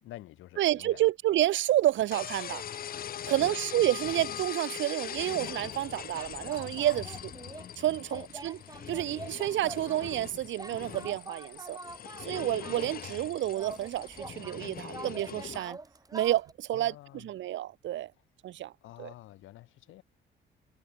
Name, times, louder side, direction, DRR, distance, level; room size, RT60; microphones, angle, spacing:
voice 1, 0.0-1.1 3.1-3.6 6.9-7.2 8.1-8.3 16.7-17.3 18.8-20.0, left 15 dB, 90° left, 3.7 m, -49 dB
voice 2, 0.6-2.6 3.3-7.1 7.8-8.6 8.9-11.8 12.2-15.8 16.1-18.1 18.4-18.7 19.0-19.1, right 13 dB, 70° right, 0.8 m, -29 dB
sound 1, 2.1-15.6, left 9 dB, 50° left, 0.7 m, -41 dB
sound 2, 5.4-13.2 13.5-16.5, right 3 dB, 20° right, 3.7 m, -47 dB
cardioid pair, 90°, 20 cm